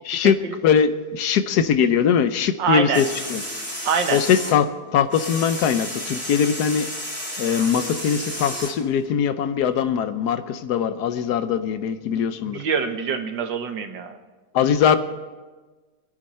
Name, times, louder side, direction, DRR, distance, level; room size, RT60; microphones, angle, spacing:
voice 1, 0.0-3.4 4.1-6.9 7.4-12.6 14.5-15.0, left 7 dB, 65° left, 11 dB, 1.3 m, -21 dB
voice 2, 2.6-3.0 3.8-4.2 12.5-14.2, right 6 dB, 80° right, 7 dB, 1.8 m, -24 dB
sound 1, 2.9-4.6 4.9-8.8, equal, 5° left, 2.9 m, -32 dB
25.0 x 10.0 x 4.3 m, 1.3 s
omnidirectional pair, 2.0 m